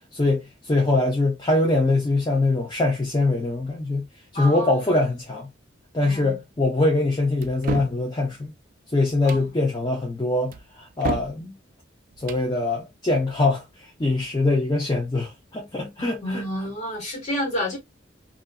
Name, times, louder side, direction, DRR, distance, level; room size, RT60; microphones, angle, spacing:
voice 1, 0.1-4.0 4.3-5.5 5.9-8.5 8.9-11.5 12.2-16.4, left 2 dB, 25° left, 0.5 m, -23 dB
voice 2, 4.3-4.8 6.0-6.4 9.2-9.4 16.2-17.8, equal, 40° left, 1.2 m, -29 dB
sound 1, 7.4-8.0 9.1-9.5 10.5-11.4 12.1-12.5, right 4 dB, 45° right, 0.3 m, -31 dB
2.6 x 2.5 x 2.2 m
head